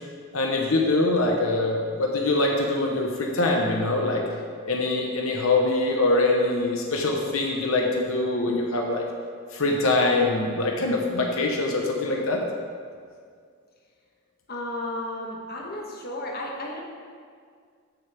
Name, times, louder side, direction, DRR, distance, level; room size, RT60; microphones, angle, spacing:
voice 1, 0.3-4.2 4.6-9.0 9.5-12.4, left 2 dB, 80° left, 0 dB, 1.1 m, -23 dB
voice 2, 14.5-16.8, left 1 dB, 45° left, -1 dB, 1.3 m, -33 dB
13.5 x 6.9 x 3.5 m, 2.1 s
head